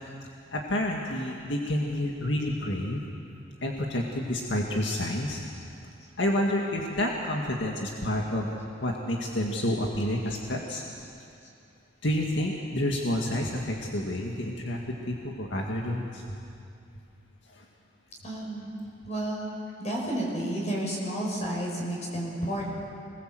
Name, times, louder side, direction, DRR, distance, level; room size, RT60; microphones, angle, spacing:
voice 1, 0.5-3.0 3.6-5.4 6.2-8.5 8.8-10.8 12.0-16.4 17.5-17.6, left 1 dB, 65° left, -1 dB, 2.1 m, -29 dB
voice 2, 18.2-18.7 19.1-19.5 19.8-22.7, right 1 dB, 35° left, -2 dB, 5.9 m, -31 dB
26.0 x 20.5 x 7.9 m, 2.6 s
head